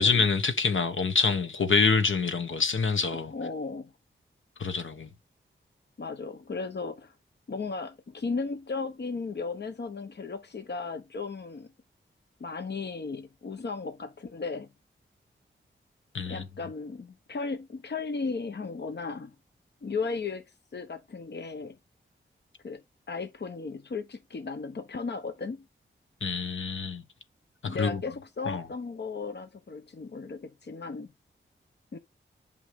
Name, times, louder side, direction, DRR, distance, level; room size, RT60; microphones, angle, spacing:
voice 1, 0.0-3.3 4.6-5.1 16.1-16.4 26.2-27.0 27.6-28.0 28.5-28.6, left 5 dB, 70° left, 1.4 m, -26 dB
voice 2, 3.3-3.9 6.0-7.1 7.5-11.7 12.4-14.7 16.3-19.3 19.8-21.8 22.6-22.8 23.1-25.7 27.6-31.1 31.9-32.0, left 4 dB, 55° left, 1.0 m, -35 dB
8.1 x 5.5 x 3.6 m
cardioid pair, 45°, 21 cm